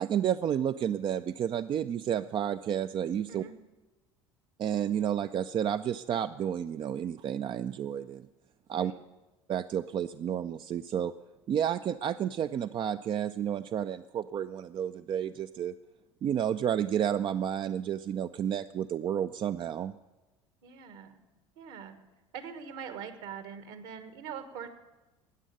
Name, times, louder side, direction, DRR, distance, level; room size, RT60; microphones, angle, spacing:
voice 1, 0.0-3.4 4.6-8.3 8.7-8.9 9.5-11.1 11.5-15.7 16.2-19.9, right 9 dB, 35° right, 11 dB, 0.4 m, -31 dB
voice 2, 20.6-21.2 21.6-22.0 22.3-24.7, right 7 dB, 60° right, 10 dB, 1.5 m, -43 dB
14.0 x 9.1 x 6.5 m, 1.1 s
hypercardioid pair, 70°, 15 cm